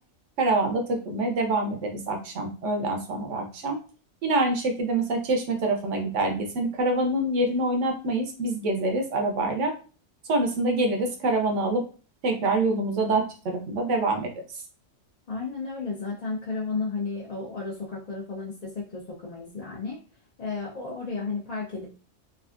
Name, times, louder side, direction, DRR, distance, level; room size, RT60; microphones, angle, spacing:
voice 1, 0.4-3.8 4.2-9.7 10.3-11.8 12.2-14.3, right 2 dB, 80° right, 4 dB, 1.1 m, -25 dB
voice 2, 15.3-20.0 20.4-21.9, left 4 dB, 45° left, -4 dB, 0.6 m, -33 dB
3.3 x 2.5 x 2.4 m, 0.37 s
omnidirectional pair, 1.2 m